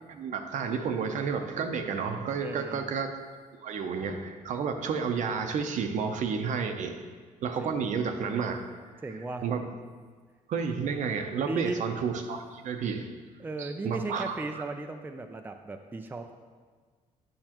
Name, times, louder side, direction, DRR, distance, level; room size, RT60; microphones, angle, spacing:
voice 1, 0.1-3.1 3.6-7.0 7.4-8.6 9.4-9.7 10.5-13.1 13.6-14.6, right 6 dB, 65° right, 5 dB, 0.7 m, -31 dB
voice 2, 2.4-2.9 7.6-7.8 9.0-9.4 11.5-11.9 13.4-16.3, right 3 dB, 15° right, 5 dB, 0.4 m, -36 dB
8.6 x 5.4 x 3.0 m, 1.5 s
cardioid pair, 100°, 14 cm